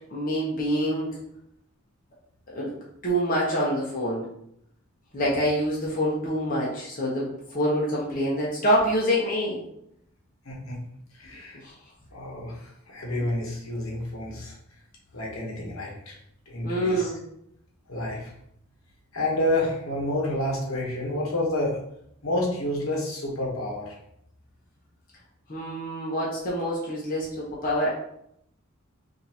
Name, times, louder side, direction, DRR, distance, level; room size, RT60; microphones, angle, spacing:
voice 1, 0.1-1.2 2.5-4.3 5.1-9.6 11.6-11.7 13.1-13.2 15.6-15.7 16.6-17.2 25.5-27.9, equal, 40° left, -5 dB, 0.9 m, -26 dB
voice 2, 10.4-10.8 11.1-11.6 12.1-14.5 15.1-16.1 16.5-17.1 17.9-18.3 19.1-21.8 22.2-24.0, left 1 dB, 70° left, -3 dB, 1.1 m, -29 dB
5.2 x 2.6 x 2.8 m, 0.74 s
head